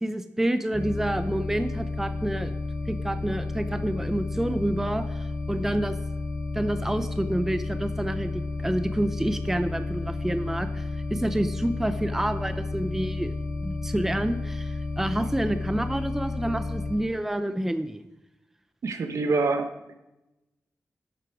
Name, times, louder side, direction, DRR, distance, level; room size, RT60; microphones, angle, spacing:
voice 1, 0.0-2.5 2.9-6.0 6.5-13.3 13.6-18.0, right 1 dB, 5° right, 9 dB, 0.5 m, -28 dB
sound 1, 0.7-16.9, left 3 dB, 40° left, 3.9 m, -32 dB
voice 2, 18.8-19.9, right 3 dB, 70° right, 7 dB, 1.1 m, -26 dB
11.0 x 7.9 x 4.9 m, 0.93 s
wide cardioid pair, 175°, 5 cm